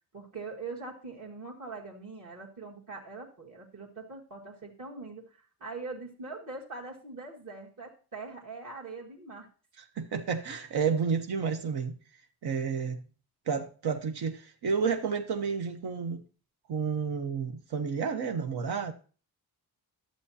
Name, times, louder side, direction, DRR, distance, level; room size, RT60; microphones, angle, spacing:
voice 1, 0.1-9.5, right 3 dB, 55° right, 2.0 m, -42 dB
voice 2, 10.0-11.9 12.4-13.0 13.5-16.2 16.7-18.9, right 6 dB, 80° right, 1.0 m, -30 dB
11.5 x 7.5 x 2.8 m
cardioid pair, 95°, 38 cm